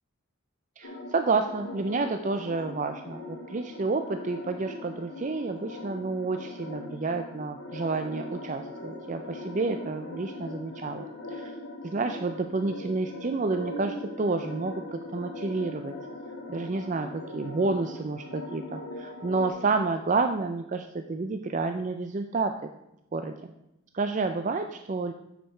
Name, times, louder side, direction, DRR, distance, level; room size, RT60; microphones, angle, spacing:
sound 1, 0.8-19.5, left 2 dB, 80° left, 2.4 m, -40 dB
voice 1, 0.8-11.5 11.8-15.9 16.5-22.7 23.1-23.4 23.9-25.1, right 3 dB, 35° right, 7 dB, 0.4 m, -30 dB
9.4 x 6.6 x 4.4 m, 0.87 s
head